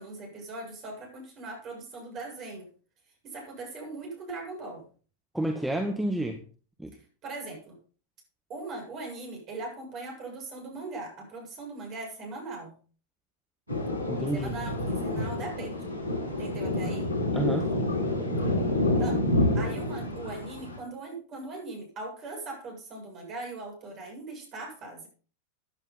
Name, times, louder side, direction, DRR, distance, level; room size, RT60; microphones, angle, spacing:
voice 1, 0.0-2.7 3.2-4.8 7.2-7.8 8.5-12.7 14.3-15.8 16.4-17.1 19.0-19.3 19.5-25.1, right 2 dB, 35° right, 1 dB, 7.5 m, -40 dB
voice 2, 5.3-6.4 6.8-6.9 14.1-14.5 17.3-17.7, right 1 dB, 5° right, 4 dB, 1.5 m, -29 dB
Thunder, 13.7-20.8, left 1 dB, 85° right, 6.2 m, -28 dB
15.5 x 10.0 x 4.1 m, 0.40 s
figure-of-eight pair, 90°, 0 cm